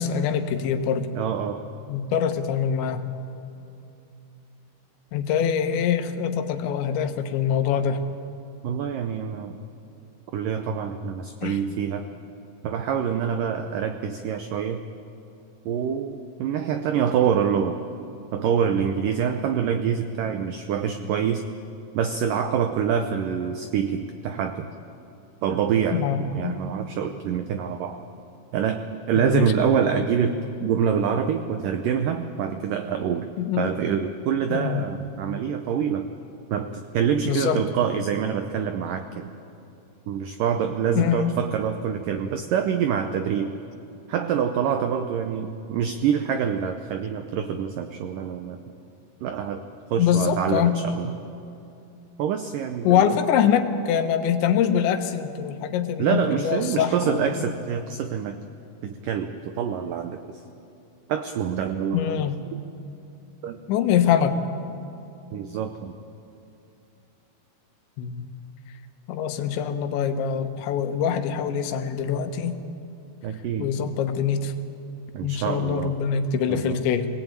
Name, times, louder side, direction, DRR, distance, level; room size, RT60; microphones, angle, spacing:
voice 1, 0.0-1.1 1.9-3.0 5.1-8.0 11.4-11.6 25.9-26.6 29.2-29.5 33.4-33.7 34.5-34.9 37.3-37.6 41.0-41.4 50.0-50.8 52.9-57.3 61.9-62.4 63.7-64.4 68.0-68.3 69.1-72.6 73.6-74.5 75.2-77.1, left 8 dB, 90° left, 7 dB, 3.5 m, -24 dB
voice 2, 1.2-1.6 8.6-9.6 10.3-12.1 12.6-14.8 15.7-17.8 18.3-21.5 21.9-24.7 25.4-28.0 28.5-36.1 36.5-39.3 40.1-43.5 44.1-48.6 49.2-49.6 49.9-51.1 52.2-53.2 56.0-58.4 58.8-60.4 61.1-62.2 62.5-62.6 63.4-63.6 65.3-66.0 73.2-73.7 75.1-75.9 76.5-76.8, right 8 dB, 85° right, 7 dB, 1.9 m, -26 dB
24.5 x 18.5 x 9.0 m, 2.7 s
omnidirectional pair, 5.1 m